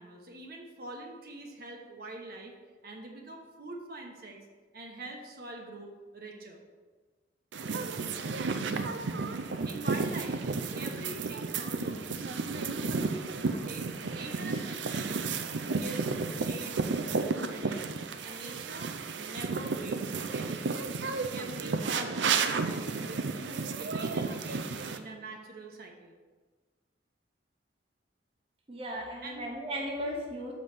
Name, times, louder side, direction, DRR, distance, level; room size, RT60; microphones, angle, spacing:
voice 1, 0.0-2.5 2.8-4.4 4.7-6.6 9.4-10.4 10.7-12.3 13.5-15.4 15.7-16.8 17.1-18.0 18.2-20.8 21.3-26.2 29.2-29.5, right 2 dB, 55° right, 1 dB, 1.1 m, -44 dB
sound 1, 7.5-25.0, right 4 dB, 75° right, 0.5 m, -32 dB
voice 2, 28.7-30.5, equal, 30° right, -1 dB, 1.0 m, -36 dB
7.1 x 5.3 x 5.9 m, 1.4 s
head